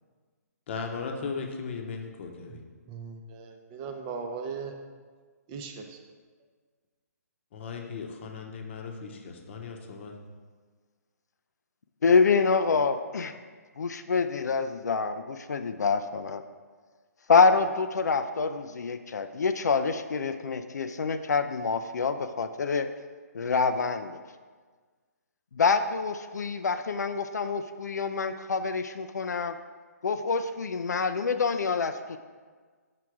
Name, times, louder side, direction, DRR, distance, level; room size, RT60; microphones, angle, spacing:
voice 1, 0.7-2.6 7.5-10.1, left 5 dB, 45° left, 3 dB, 0.9 m, -37 dB
voice 2, 2.9-4.7 5.5-6.0, right 5 dB, 25° right, 3 dB, 0.6 m, -38 dB
voice 3, 12.0-13.4 13.8-16.4 17.3-22.9 23.3-24.2 25.5-29.6 30.0-32.2, left 4 dB, 75° left, 9 dB, 0.4 m, -26 dB
5.9 x 4.6 x 4.7 m, 1.5 s
hypercardioid pair, 140°, 9 cm